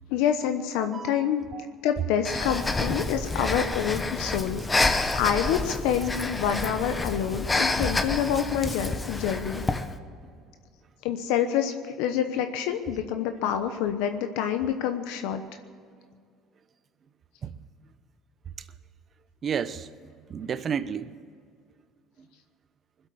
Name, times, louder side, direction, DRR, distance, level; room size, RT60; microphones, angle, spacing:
voice 1, 0.1-1.4 1.8-9.6 11.0-15.4, left 9 dB, 80° left, 7 dB, 0.9 m, -27 dB
voice 2, 0.8-1.7 17.4-17.6 19.4-21.1, right 7 dB, 40° right, 14 dB, 0.8 m, -33 dB
Breathing, 2.2-9.9, left 2 dB, 15° left, 1.1 m, -28 dB
21.0 x 8.1 x 8.4 m, 2.2 s
supercardioid pair, 90°, 0 cm